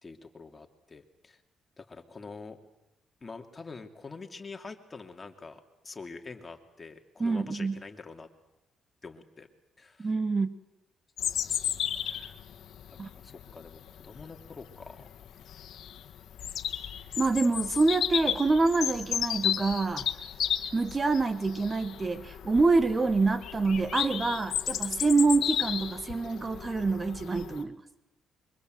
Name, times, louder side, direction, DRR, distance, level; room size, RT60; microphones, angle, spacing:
voice 1, 0.0-1.4 1.8-2.6 3.2-8.3 9.0-9.5 9.8-10.1 11.5-11.6 12.0-12.4 12.9-15.2, left 4 dB, 30° left, 4 dB, 2.8 m, -46 dB
voice 2, 7.2-7.8 10.0-10.5 13.0-13.1 17.2-20.1 20.7-27.8, right 3 dB, 25° right, 12 dB, 1.3 m, -26 dB
Bird vocalization bird call bird song, 11.2-27.6, left 10 dB, 70° left, 1.6 m, -34 dB
25.5 x 24.0 x 7.9 m, 0.97 s
cardioid pair, 90°, 0 cm